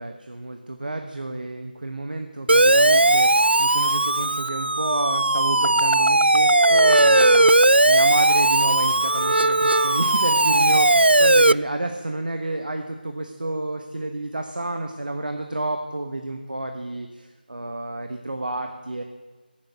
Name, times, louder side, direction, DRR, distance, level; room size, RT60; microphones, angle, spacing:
voice 1, 0.0-19.0, right 2 dB, 55° right, 5 dB, 1.2 m, -30 dB
Siren, 2.5-11.5, right 2 dB, 85° right, 0.4 m, -17 dB
15.5 x 7.7 x 9.3 m, 1.3 s
figure-of-eight pair, 165°, 5 cm